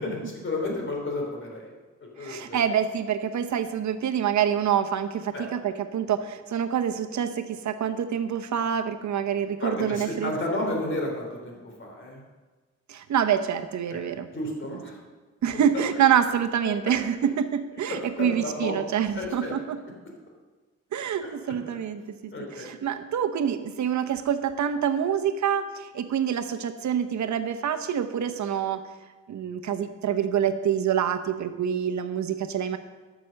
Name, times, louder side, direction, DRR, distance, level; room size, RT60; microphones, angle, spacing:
voice 1, 0.0-1.7 2.2-2.7 5.3-5.4 9.6-12.2 13.9-14.0 14.3-15.0 15.5-15.6 17.9-18.8 19.1-19.6 21.4-21.5 22.3-22.7, left 2 dB, 40° left, 0 dB, 3.5 m, -32 dB
voice 2, 2.2-10.3 10.6-10.8 12.9-14.3 15.4-19.8 20.9-28.8 29.3-32.8, right 8 dB, 70° right, 10 dB, 1.0 m, -26 dB
13.0 x 6.1 x 6.5 m, 1.3 s
cardioid pair, 110°, 29 cm